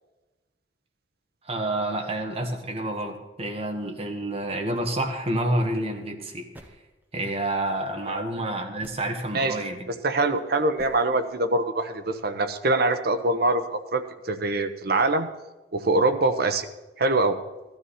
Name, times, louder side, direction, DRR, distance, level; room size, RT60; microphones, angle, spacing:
voice 1, 1.5-6.5 7.1-9.9, right 1 dB, 35° right, 3 dB, 1.7 m, -29 dB
sound 1, 5.7-6.1 6.5-7.4 8.3-8.4 8.8-9.3 10.1-10.4 10.8-11.0, equal, 10° right, 1.1 m, -48 dB
voice 2, 10.0-15.3 15.7-16.7 17.0-17.4, right 2 dB, 60° right, 8 dB, 1.0 m, -24 dB
16.5 x 12.5 x 4.3 m, 1.1 s
head